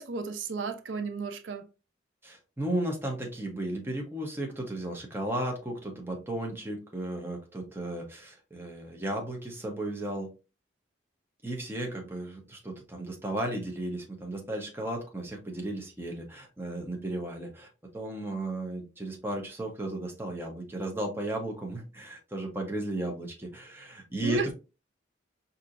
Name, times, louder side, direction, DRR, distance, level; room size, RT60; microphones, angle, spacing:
voice 1, 0.0-1.7 24.2-24.5, right 4 dB, 80° right, 0.4 m, -33 dB
voice 2, 2.2-10.3 11.4-24.5, right 1 dB, 10° right, 0.8 m, -35 dB
4.4 x 2.7 x 2.4 m
head